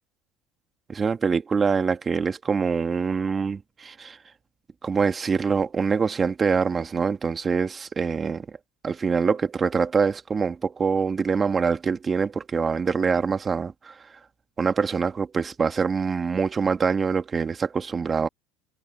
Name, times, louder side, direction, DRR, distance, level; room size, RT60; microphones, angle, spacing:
voice 1, 0.9-4.2 4.8-8.6 8.8-14.0 14.6-18.3, right 5 dB, 25° right, 1.9 m, -24 dB
supercardioid pair, 115°, 0 cm